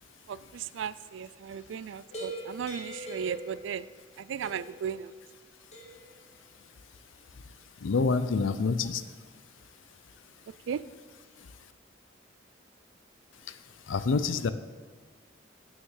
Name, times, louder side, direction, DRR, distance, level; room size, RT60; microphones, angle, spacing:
voice 1, 0.3-3.9 4.2-5.1 10.7-10.8, right 7 dB, 70° right, 18 dB, 0.3 m, -36 dB
sound 1, 2.1-4.1 4.4-4.9 5.7-6.1, equal, 35° left, 1.7 m, -42 dB
voice 2, 7.8-9.0 13.5-13.6 13.9-14.5, left 4 dB, 80° left, 13 dB, 0.5 m, -27 dB
6.4 x 6.4 x 7.2 m, 1.5 s
head